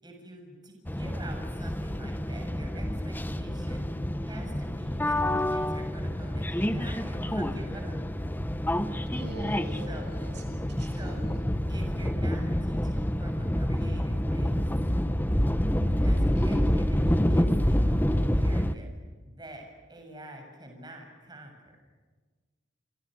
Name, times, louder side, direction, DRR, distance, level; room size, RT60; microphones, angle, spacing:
voice 1, 0.0-3.8 4.2-8.1 9.9-10.1 10.9-11.4 11.7-14.7 15.6-18.9 19.2-21.7, right 1 dB, 25° right, 2 dB, 7.0 m, -46 dB
sound 1, 0.9-18.8, equal, 10° left, 1.2 m, -28 dB
voice 2, 9.1-11.4 16.3-16.6, right 1 dB, 65° right, 4 dB, 7.5 m, -43 dB
28.5 x 28.5 x 6.4 m, 1.4 s
head